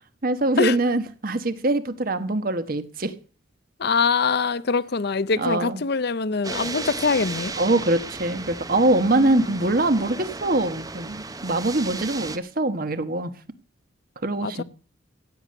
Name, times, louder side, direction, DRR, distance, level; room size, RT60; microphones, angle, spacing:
voice 1, 0.2-3.1 5.4-5.8 7.6-13.3 14.2-14.6, right 2 dB, 45° right, 1.3 m, -23 dB
voice 2, 3.8-7.5 9.1-9.6 14.4-14.6, left 4 dB, 55° left, 0.6 m, -24 dB
sound 1, 6.4-12.4, right 3 dB, 20° right, 0.8 m, -35 dB
15.5 x 8.7 x 6.6 m
head